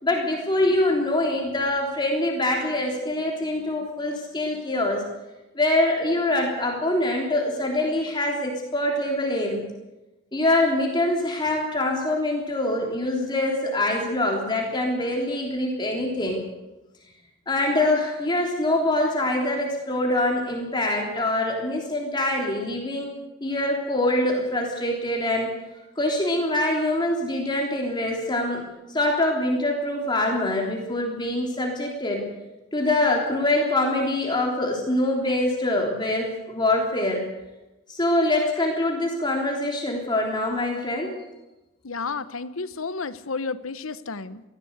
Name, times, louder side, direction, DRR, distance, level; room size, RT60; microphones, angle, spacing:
voice 1, 0.0-5.0 5.6-9.6 10.3-16.4 17.5-23.1 23.4-25.5 26.0-28.6 28.9-32.2 32.7-37.2 37.9-41.1, left 1 dB, 20° left, 0 dB, 3.5 m, -24 dB
voice 2, 41.8-44.4, left 4 dB, 85° left, 14 dB, 1.1 m, -31 dB
23.0 x 16.0 x 8.2 m, 1.0 s
head